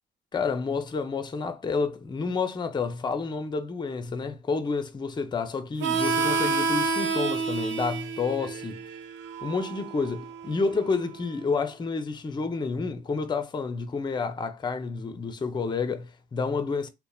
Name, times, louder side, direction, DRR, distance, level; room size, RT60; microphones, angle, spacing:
voice 1, 0.3-8.8 9.4-16.9, left 4 dB, 20° left, 0.5 m, -29 dB
Harmonica, 5.8-11.1, right 4 dB, 70° right, 0.5 m, -29 dB
2.8 x 2.0 x 2.2 m
cardioid pair, 90°, 20 cm